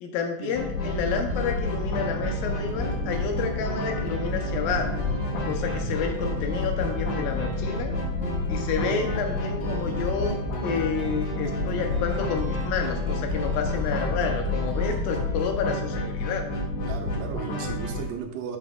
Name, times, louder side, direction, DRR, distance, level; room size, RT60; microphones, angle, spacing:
voice 1, 0.0-4.9 5.5-7.9 8.5-16.4, left 6 dB, 80° left, 4 dB, 2.4 m, -30 dB
sound 1, 0.5-18.0, left 2 dB, 65° left, 2.5 m, -30 dB
sound 2, 0.8-15.4, equal, 25° left, 2.8 m, -33 dB
voice 2, 16.8-18.6, right 7 dB, 75° right, 3 dB, 2.5 m, -35 dB
12.0 x 6.0 x 2.3 m, 0.80 s
omnidirectional pair, 4.1 m